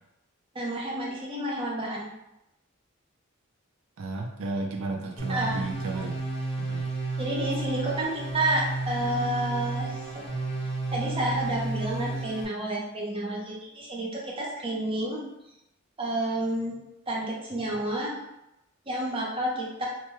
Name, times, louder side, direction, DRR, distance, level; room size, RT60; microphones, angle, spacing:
voice 1, 0.5-2.1 5.3-5.6 7.2-15.2 16.0-16.8 17.1-18.1 18.9-19.8, right 1 dB, 25° right, -3 dB, 0.7 m, -30 dB
voice 2, 4.0-6.2 6.6-6.9, right 3 dB, 80° right, 1 dB, 0.4 m, -33 dB
sound 1, 5.2-12.4, right 2 dB, 25° left, 0.8 m, -32 dB
2.9 x 2.2 x 3.1 m, 0.87 s
head